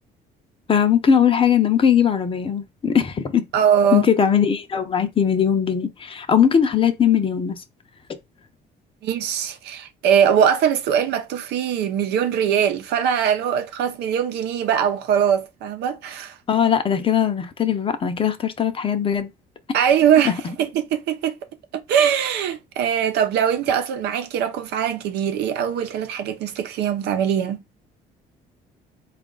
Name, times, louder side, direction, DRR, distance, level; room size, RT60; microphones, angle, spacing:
voice 1, 0.7-3.4 3.9-7.6 16.5-19.3 20.2-20.4, left 8 dB, 30° left, 0.7 m, -19 dB
voice 2, 3.5-4.1 9.0-16.4 19.7-21.3 21.7-27.6, right 8 dB, 80° right, 0.7 m, -21 dB
4.2 x 2.5 x 3.8 m
cardioid pair, 110°, 17 cm